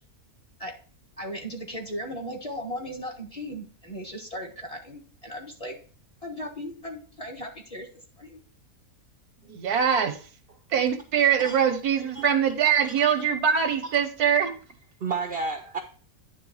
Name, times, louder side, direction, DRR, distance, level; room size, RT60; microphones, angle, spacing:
voice 1, 1.2-5.8 6.2-7.9 8.2-8.4, equal, 25° left, 1.4 m, -37 dB
voice 2, 9.4-10.2 10.7-14.5, right 8 dB, 85° right, 1.6 m, -23 dB
voice 3, 12.0-12.3 13.9-14.0 15.0-15.8, right 4 dB, 50° right, 0.8 m, -31 dB
9.5 x 3.5 x 5.5 m
omnidirectional pair, 1.6 m